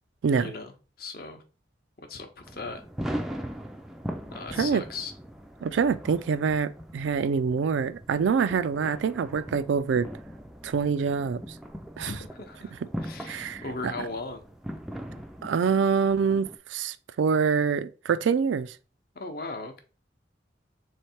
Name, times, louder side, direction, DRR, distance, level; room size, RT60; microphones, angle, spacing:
voice 1, 0.4-1.4 2.0-2.9 4.3-5.1 12.0-12.7 13.0-14.4 19.1-19.8, left 3 dB, 50° left, 0.7 m, -38 dB
sound 1, 2.4-16.6, equal, ahead, 0.3 m, -40 dB
voice 2, 4.5-4.8 5.6-10.1 10.6-11.4 12.0-12.1 13.3-13.9 15.4-18.8, right 6 dB, 85° right, 0.3 m, -25 dB
3.5 x 3.2 x 4.3 m
head